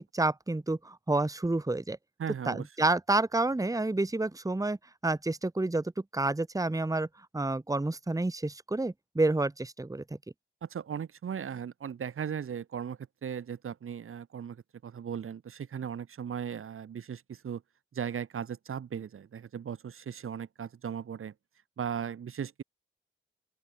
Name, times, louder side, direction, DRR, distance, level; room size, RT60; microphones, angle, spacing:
voice 1, 0.0-2.0 2.5-4.8 5.0-7.1 7.3-10.0, right 2 dB, 15° right, 1.1 m, -29 dB
voice 2, 2.2-2.7 10.6-14.6 14.8-17.6 17.9-21.3 21.8-22.6, right 8 dB, 85° right, 1.9 m, -37 dB
open air
cardioid pair, 50°, 21 cm